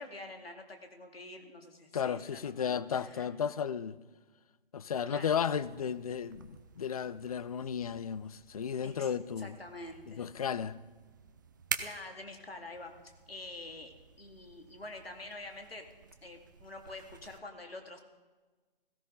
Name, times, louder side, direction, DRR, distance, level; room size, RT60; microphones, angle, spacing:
voice 1, 0.0-3.3 5.1-5.3 8.8-9.1 9.4-10.3 11.8-15.9 16.2-18.0, left 2 dB, 90° left, 2.3 m, -47 dB
voice 2, 1.9-4.0 4.7-9.5 10.2-10.8, left 7 dB, 40° left, 0.4 m, -34 dB
sound 1, 5.5-17.4, right 6 dB, 20° right, 0.5 m, -47 dB
16.5 x 15.0 x 3.8 m
figure-of-eight pair, 145°, 29 cm